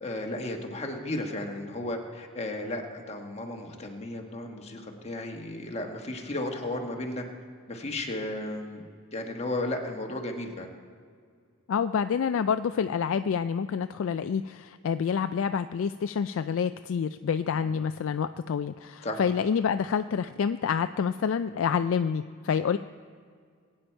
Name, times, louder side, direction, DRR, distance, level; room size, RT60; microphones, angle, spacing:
voice 1, 0.0-7.2 7.7-10.7 19.0-19.2, left 1 dB, 30° left, 2 dB, 1.3 m, -34 dB
voice 2, 11.7-22.8, left 7 dB, 65° left, 11 dB, 0.3 m, -28 dB
21.5 x 8.7 x 4.5 m, 2.1 s
head